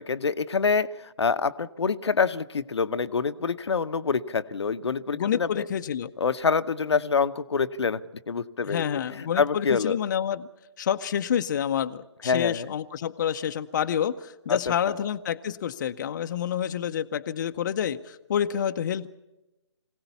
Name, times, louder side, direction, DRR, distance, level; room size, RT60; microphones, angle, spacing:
voice 1, 0.0-5.7 6.2-10.0 12.2-12.7 14.5-14.7, left 5 dB, 65° left, 11 dB, 0.9 m, -26 dB
voice 2, 5.1-6.1 8.7-10.5 10.8-19.1, left 9 dB, 40° left, 7 dB, 0.7 m, -28 dB
24.0 x 17.0 x 6.9 m, 1.0 s
figure-of-eight pair, 140°, 15 cm